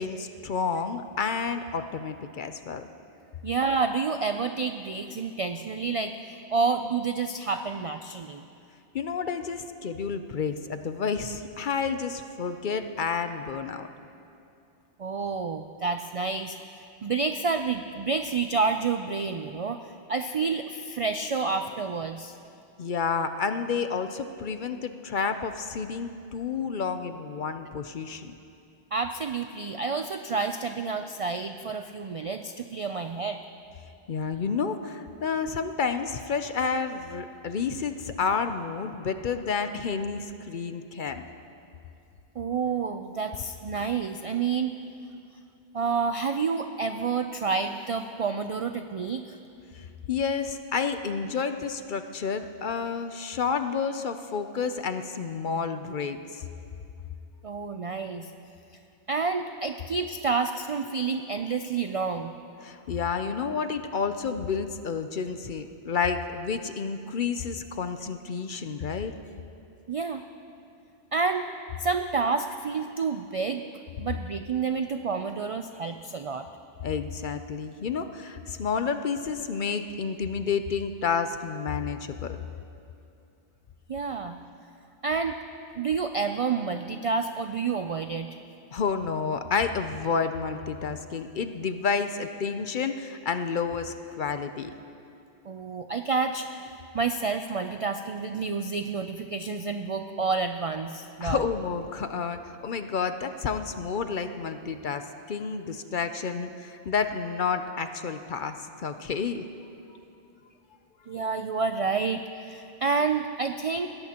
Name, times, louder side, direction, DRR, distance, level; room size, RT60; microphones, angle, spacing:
voice 1, 0.0-2.9 8.9-13.9 22.8-28.3 34.1-41.3 49.7-56.4 62.6-69.1 76.8-82.4 84.2-84.3 88.7-94.7 101.2-109.5, left 5 dB, 55° left, 8 dB, 0.6 m, -30 dB
voice 2, 3.4-6.1 6.5-8.4 15.0-16.6 17.0-19.8 20.1-22.4 28.9-33.4 42.4-44.7 45.7-49.4 57.4-58.3 59.1-62.3 69.9-70.2 71.1-71.4 71.8-73.6 74.0-76.5 83.9-84.4 85.0-85.4 85.8-88.3 95.5-101.4 111.1-113.9, right 4 dB, 65° right, 7 dB, 0.3 m, -29 dB
21.0 x 17.0 x 2.9 m, 2.6 s
omnidirectional pair, 1.2 m